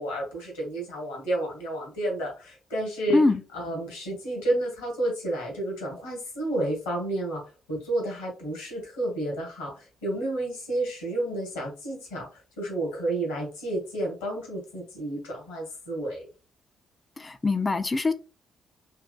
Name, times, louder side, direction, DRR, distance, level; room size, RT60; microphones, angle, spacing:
voice 1, 0.0-3.2 3.5-7.4 7.7-16.2, right 1 dB, 80° left, 1.3 m, -31 dB
voice 2, 17.2-18.1, left 3 dB, 30° left, 0.4 m, -23 dB
3.5 x 2.9 x 2.3 m
figure-of-eight pair, 40°, 0 cm